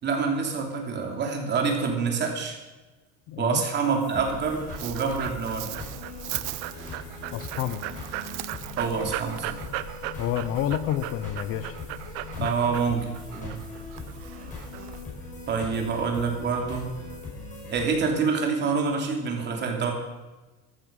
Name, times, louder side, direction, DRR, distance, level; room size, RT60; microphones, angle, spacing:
voice 1, 0.0-2.6 3.4-5.9 8.8-9.6 12.4-13.6 15.5-16.9 17.7-19.9, right 5 dB, 30° right, 2 dB, 3.0 m, -27 dB
voice 2, 3.3-3.6 7.3-7.8 10.2-11.8 12.4-12.5 15.7-15.9, left 11 dB, 40° left, 12 dB, 0.7 m, -29 dB
sound 1, 3.7-17.8, left 3 dB, 20° left, 5.2 m, -40 dB
Dog, 4.2-15.0, right 16 dB, 80° right, 0.9 m, -37 dB
14.5 x 12.5 x 5.3 m, 1.2 s
cardioid pair, 155°, 35 cm